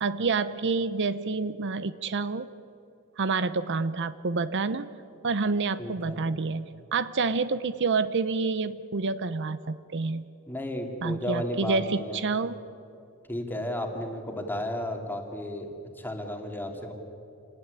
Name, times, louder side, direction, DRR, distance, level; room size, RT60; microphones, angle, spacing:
voice 1, 0.0-2.5 3.2-4.9 5.2-10.3 11.0-12.6, right 4 dB, 55° right, 14 dB, 0.7 m, -28 dB
voice 2, 5.8-6.2 10.5-12.2 13.3-16.9, left 1 dB, 10° left, 3 dB, 2.8 m, -33 dB
28.0 x 19.0 x 9.9 m, 2.7 s
head